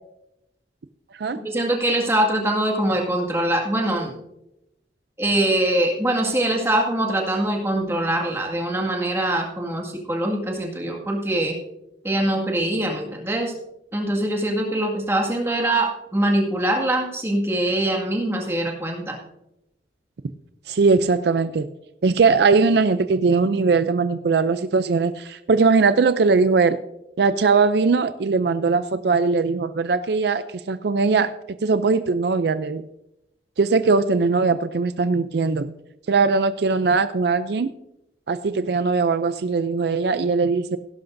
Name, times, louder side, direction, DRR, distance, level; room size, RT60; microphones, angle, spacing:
voice 1, 1.4-4.1 5.2-11.6 12.0-13.5 13.9-19.2, right 1 dB, 15° right, 0 dB, 1.9 m, -23 dB
voice 2, 20.7-21.7 22.0-26.8 27.2-31.3 31.6-32.8 33.6-35.7 36.1-37.7 38.3-40.8, right 4 dB, 65° right, 11 dB, 0.4 m, -20 dB
16.5 x 11.5 x 2.6 m, 0.87 s
head